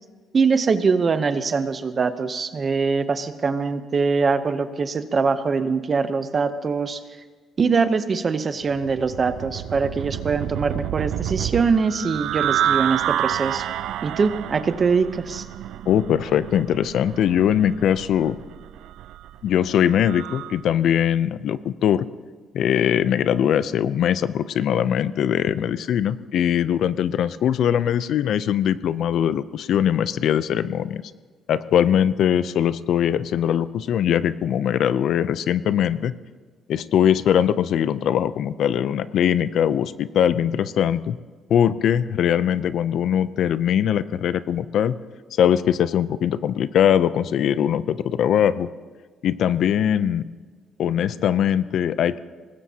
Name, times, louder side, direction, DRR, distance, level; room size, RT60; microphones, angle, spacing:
voice 1, 0.3-7.0 7.6-13.7 14.0-15.5, right 5 dB, 30° right, 11 dB, 0.7 m, -23 dB
sound 1, 8.7-20.6, right 11 dB, 80° right, 0.4 m, -29 dB
voice 2, 15.9-18.4 19.4-22.1 22.5-31.0 31.5-36.1 36.7-41.2 41.5-44.9 45.3-48.7 49.2-50.2 50.8-52.2, left 9 dB, 60° left, 15 dB, 0.5 m, -21 dB
24.5 x 19.5 x 2.8 m, 1.4 s
cardioid pair, 165°, 0 cm